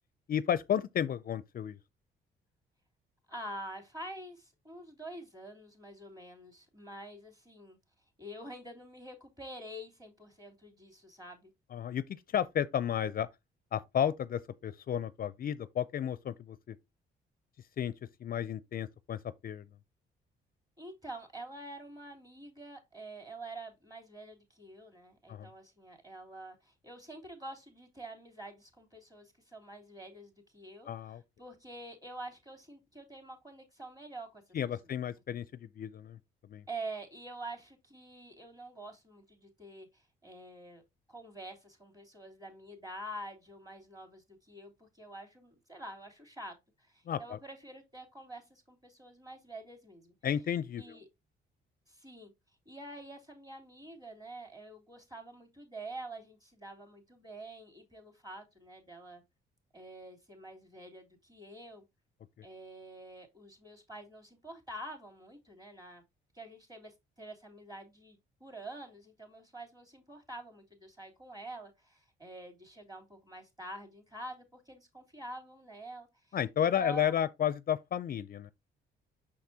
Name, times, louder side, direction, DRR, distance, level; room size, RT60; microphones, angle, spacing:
voice 1, 0.3-1.8 11.7-13.3 13.7-16.8 17.8-17.9 18.2-19.7 25.3-25.5 30.9-31.2 34.5-36.2 36.5-36.6 47.1-47.4 50.2-51.0 62.4-62.5 76.3-78.5, left 9 dB, 50° left, 0.5 m, -32 dB
voice 2, 3.3-7.8 8.2-11.5 20.8-34.4 34.8-34.9 36.7-40.8 41.1-50.1 50.8-51.0 51.9-52.3 52.6-59.2 59.7-61.8 62.4-66.0 66.3-77.1, right 1 dB, 20° right, 3.2 m, -47 dB
6.2 x 5.9 x 2.8 m
cardioid pair, 90°, 20 cm